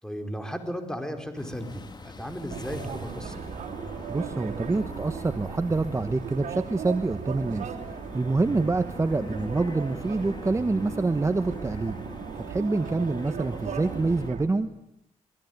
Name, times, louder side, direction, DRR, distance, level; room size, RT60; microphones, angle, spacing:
voice 1, 0.0-3.4 8.5-8.6, equal, 5° left, 6 dB, 4.7 m, -35 dB
sound 1, 1.4-14.3, left 3 dB, 35° left, 2.7 m, -44 dB
sound 2, 2.5-14.5, right 7 dB, 80° right, 3.7 m, -37 dB
voice 2, 4.1-7.7 8.1-12.0 12.5-14.7, right 3 dB, 20° right, 9 dB, 1.2 m, -26 dB
27.0 x 22.0 x 9.5 m, 0.79 s
cardioid pair, 90°, 13 cm